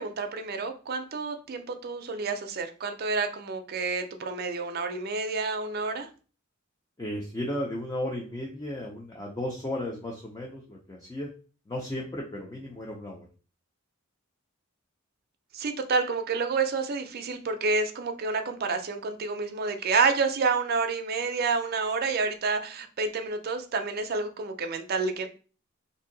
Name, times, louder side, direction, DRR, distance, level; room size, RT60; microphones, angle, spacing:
voice 1, 0.0-6.1 15.5-25.3, right 4 dB, 45° right, 6 dB, 0.5 m, -29 dB
voice 2, 7.0-11.3 11.7-13.2, left 1 dB, 15° left, -1 dB, 0.5 m, -34 dB
2.7 x 2.6 x 3.8 m, 0.37 s
head